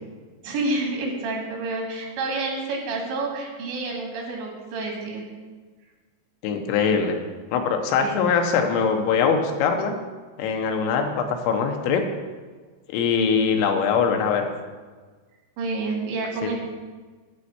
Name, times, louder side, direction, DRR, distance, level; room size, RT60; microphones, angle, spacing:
voice 1, 0.4-5.2 8.0-8.2 15.6-16.6, right 3 dB, 75° right, -1 dB, 4.3 m, -29 dB
voice 2, 6.4-7.2 7.5-9.9 10.4-12.0 12.9-14.5, left 6 dB, 90° left, 4 dB, 3.4 m, -22 dB
11.5 x 4.4 x 8.2 m, 1.4 s
omnidirectional pair, 5.2 m